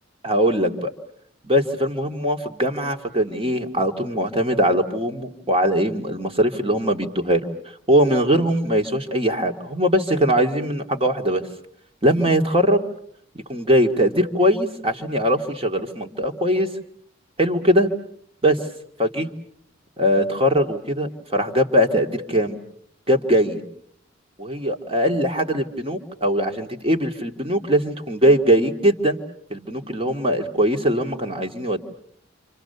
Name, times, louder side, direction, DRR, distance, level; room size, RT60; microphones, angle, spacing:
voice 1, 0.2-0.9 1.4-7.4 7.9-11.4 12.0-12.8 13.5-16.7 17.4-17.9 18.4-18.6 19.0-19.3 20.0-22.6 23.1-23.6 24.4-29.2 29.5-31.8, equal, 25° right, 5 dB, 2.2 m, -21 dB
29.5 x 27.5 x 6.9 m, 0.68 s
head